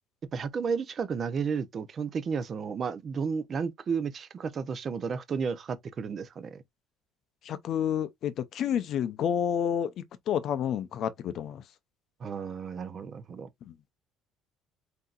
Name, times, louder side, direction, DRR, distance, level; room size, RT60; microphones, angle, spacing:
voice 1, 0.3-6.6 12.2-13.5, right 6 dB, 30° right, 0.6 m, -32 dB
voice 2, 7.4-11.6 13.7-13.8, left 9 dB, 45° left, 0.6 m, -30 dB
7.6 x 2.8 x 2.4 m
cardioid pair, 155°, 0 cm